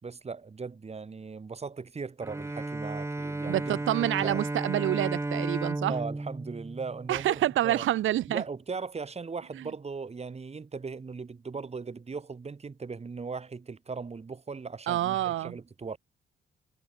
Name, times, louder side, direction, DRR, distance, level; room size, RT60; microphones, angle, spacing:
voice 1, 0.0-3.8 4.2-4.4 5.9-7.9 8.3-16.0, right 4 dB, 30° right, 5.9 m, -38 dB
Bowed string instrument, 2.2-7.6, right 2 dB, 15° right, 1.7 m, -34 dB
voice 2, 3.5-5.9 7.1-8.4 14.9-15.5, right 13 dB, 80° right, 2.2 m, -27 dB
cardioid pair, 90°, 20 cm